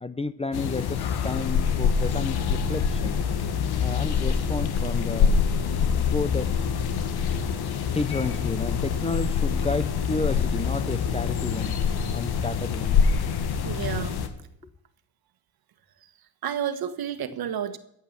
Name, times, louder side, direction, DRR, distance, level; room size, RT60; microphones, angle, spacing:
voice 1, 0.0-3.2 3.8-5.3 6.0-6.5 7.9-11.8 12.1-13.0, left 3 dB, 15° left, 14 dB, 0.7 m, -31 dB
sound 1, 0.5-14.3, left 6 dB, 70° left, 1.7 m, -25 dB
voice 2, 13.6-14.2 16.4-17.8, right 9 dB, 65° right, 12 dB, 1.5 m, -30 dB
14.5 x 8.2 x 7.4 m, 0.78 s
cardioid pair, 100°, 39 cm